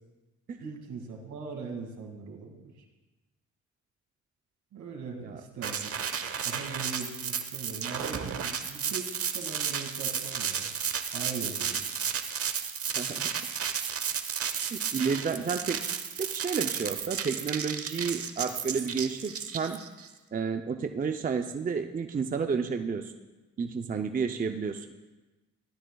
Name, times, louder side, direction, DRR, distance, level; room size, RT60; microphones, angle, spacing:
voice 1, 0.6-2.7 4.7-5.9 6.4-10.7 11.1-11.8, right 5 dB, 70° right, 3 dB, 2.3 m, -40 dB
sound 1, 5.6-20.1, right 7 dB, 50° right, 1.0 m, -33 dB
voice 2, 13.0-13.3 14.7-15.8 16.2-19.8 20.3-23.1 23.6-24.9, right 5 dB, 30° right, 6 dB, 0.6 m, -31 dB
16.0 x 12.5 x 2.3 m, 1.1 s
cardioid pair, 90°, 30 cm